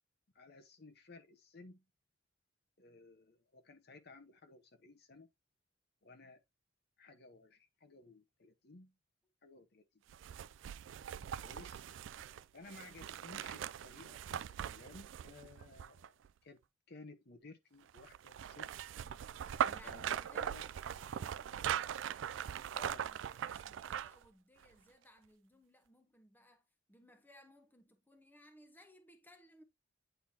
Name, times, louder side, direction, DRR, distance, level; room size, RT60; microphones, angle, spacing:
voice 1, 0.3-1.8 2.8-5.3 6.0-6.4 7.0-8.9 9.4-10.0 11.4-11.8 12.5-16.1 16.4-16.6 16.9-18.7 19.8-20.6 22.7-23.1, left 3 dB, 55° left, 1.1 m, -57 dB
sound 1, 10.1-16.3 17.9-24.2 24.6-24.7, right 9 dB, 75° right, 0.3 m, -41 dB
voice 2, 19.7-20.7 21.0-26.6 26.9-29.6, equal, 10° left, 1.0 m, -63 dB
9.2 x 3.9 x 2.8 m
head